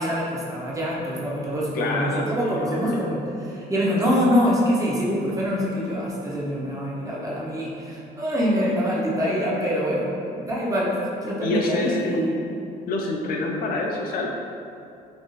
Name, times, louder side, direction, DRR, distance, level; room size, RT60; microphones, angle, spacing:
voice 1, 0.0-10.0 10.3-12.4, equal, 20° right, -6 dB, 0.7 m, -25 dB
voice 2, 1.7-3.0 9.2-9.4 11.4-12.0 12.9-14.3, left 2 dB, 60° left, 0 dB, 0.4 m, -27 dB
3.6 x 2.6 x 2.3 m, 2.5 s
cardioid pair, 110°, 17 cm